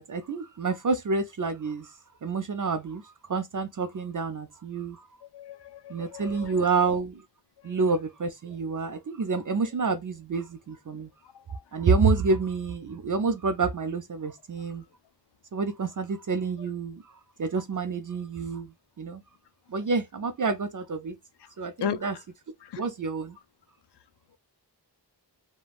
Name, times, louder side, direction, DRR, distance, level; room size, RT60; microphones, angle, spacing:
voice 1, 0.0-1.9 2.2-3.0 3.3-5.0 5.9-7.2 7.6-11.1 11.7-14.8 15.5-17.0 17.4-18.7 19.0-19.2 19.7-21.2 21.6-22.2 22.8-23.4, right 4 dB, 50° right, 0.5 m, -28 dB
voice 2, 5.3-6.7 7.7-7.8 21.8-22.1 22.6-22.8, left 7 dB, 75° left, 0.5 m, -35 dB
3.3 x 2.2 x 2.3 m
wide cardioid pair, 70°, 41 cm